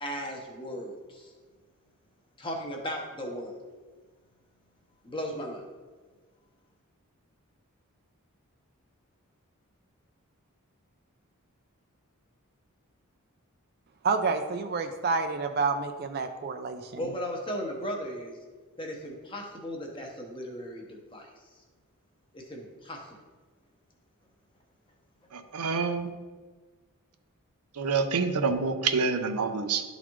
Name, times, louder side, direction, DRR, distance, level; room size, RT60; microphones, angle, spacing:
voice 1, 0.0-1.3 2.4-3.6 5.0-5.6 17.0-18.4 18.8-21.5 22.3-23.2, equal, 20° left, 1 dB, 0.9 m, -36 dB
voice 2, 14.0-17.1, right 4 dB, 45° right, 6 dB, 0.4 m, -29 dB
voice 3, 25.3-26.1 27.7-29.8, right 4 dB, 85° right, 8 dB, 0.6 m, -27 dB
11.5 x 4.0 x 3.0 m, 1.4 s
head